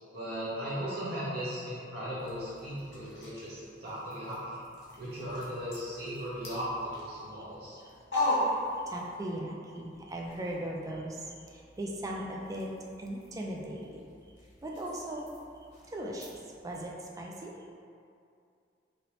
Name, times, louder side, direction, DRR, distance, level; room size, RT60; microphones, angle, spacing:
voice 1, 0.1-4.6 5.0-7.8, equal, 55° right, -10 dB, 0.9 m, -37 dB
sound 1, 2.2-9.4 9.7-16.9, left 1 dB, 80° left, 0.9 m, -39 dB
voice 2, 8.3-12.7 13.0-14.1 14.6-15.3 15.9-17.5, right 1 dB, 20° right, -1 dB, 0.3 m, -39 dB
3.0 x 2.8 x 3.0 m, 2.4 s
head